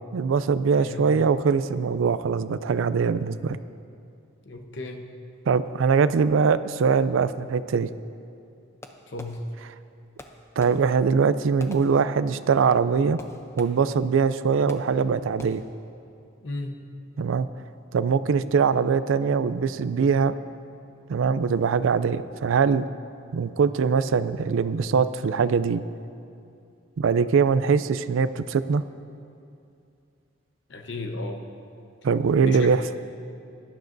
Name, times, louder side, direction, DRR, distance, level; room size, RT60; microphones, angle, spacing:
voice 1, 0.1-3.6 5.5-7.9 10.6-13.2 13.6-15.6 17.2-17.5 17.9-20.4 21.1-22.9 23.3-25.8 27.0-28.8 32.0-32.9, right 5 dB, 80° right, 14 dB, 0.4 m, -22 dB
voice 2, 0.8-1.1 4.4-5.1 9.1-9.4 16.4-16.8 30.7-31.4 32.3-32.7, left 2 dB, 60° left, 4 dB, 0.9 m, -35 dB
Fireworks, 8.8-9.8 10.2-12.6 13.2-14.1 14.7-15.1 15.4-15.9, left 1 dB, 15° left, 0.5 m, -46 dB
17.5 x 11.5 x 2.6 m, 2.6 s
head